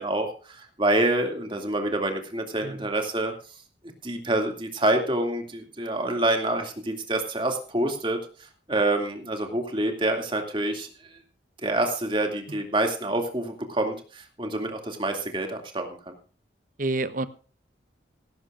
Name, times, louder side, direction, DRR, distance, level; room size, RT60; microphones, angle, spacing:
voice 1, 0.0-3.3 4.0-8.2 8.7-11.2 11.6-16.1, right 1 dB, 25° right, 4 dB, 2.4 m, -27 dB
voice 2, 16.8-17.3, right 2 dB, 45° right, 13 dB, 0.9 m, -29 dB
17.5 x 15.0 x 2.5 m, 0.38 s
head